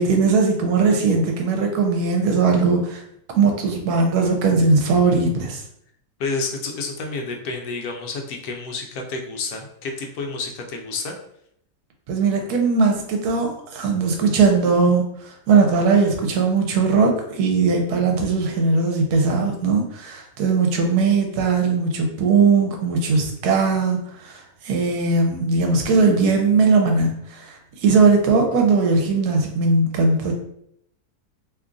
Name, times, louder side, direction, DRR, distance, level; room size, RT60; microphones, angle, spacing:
voice 1, 0.0-3.0 3.3-5.6 12.1-30.3, right 4 dB, 75° right, 3 dB, 1.1 m, -19 dB
voice 2, 6.2-11.2, left 3 dB, 75° left, 2 dB, 1.0 m, -29 dB
2.9 x 2.4 x 3.7 m, 0.72 s
omnidirectional pair, 1.7 m